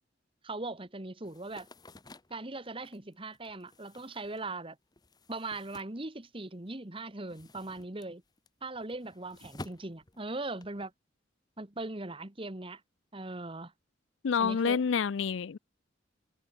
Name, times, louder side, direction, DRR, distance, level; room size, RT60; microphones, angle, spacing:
voice 1, 0.4-1.7 2.3-4.8 5.3-8.2 8.6-10.9 11.6-12.8 13.1-13.7 14.4-14.8, right 2 dB, 30° right, 1.5 m, -40 dB
sound 1, 1.2-6.7 7.0-10.9, left 2 dB, 20° left, 1.1 m, -52 dB
voice 2, 14.2-15.6, left 6 dB, 75° left, 0.4 m, -28 dB
head